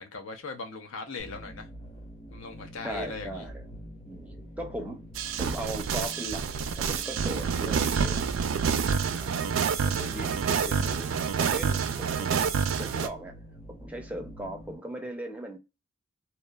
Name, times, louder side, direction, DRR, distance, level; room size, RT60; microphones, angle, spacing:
voice 1, 0.0-1.7 2.3-3.5, left 4 dB, 75° left, 0.7 m, -39 dB
sound 1, 1.2-14.7, equal, 30° left, 0.8 m, -46 dB
voice 2, 2.8-3.6 4.0-5.1 5.4-6.5 6.8-8.2 9.2-9.5 9.8-13.4 13.7-15.6, right 1 dB, 5° right, 0.5 m, -38 dB
sound 2, 5.2-13.1, right 6 dB, 70° right, 0.4 m, -28 dB
2.9 x 2.0 x 2.3 m
head